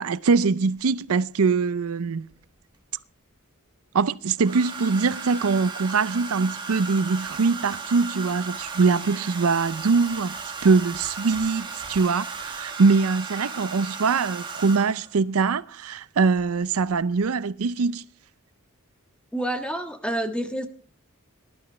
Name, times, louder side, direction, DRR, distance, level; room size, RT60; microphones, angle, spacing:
voice 1, 0.0-2.3 3.9-18.0, right 4 dB, 80° right, 0.5 m, -23 dB
Domestic sounds home sounds, 0.8-0.9 2.3-3.0 4.4-15.2 16.4-16.6 16.9-17.3, right 4 dB, 20° right, 1.7 m, -36 dB
voice 2, 19.3-20.7, right 1 dB, 5° left, 1.5 m, -28 dB
19.5 x 11.5 x 3.2 m
head